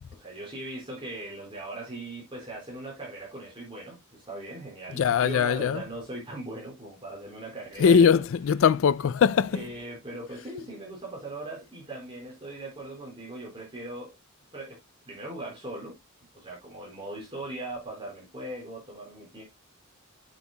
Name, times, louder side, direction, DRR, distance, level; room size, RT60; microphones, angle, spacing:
voice 1, 0.1-8.2 9.5-14.1 14.5-14.8 15.1-15.9 16.3-19.4, right 2 dB, 25° right, 4.5 m, -39 dB
voice 2, 5.0-5.8 7.8-9.6, left 7 dB, 65° left, 0.4 m, -21 dB
9.4 x 7.7 x 2.3 m
head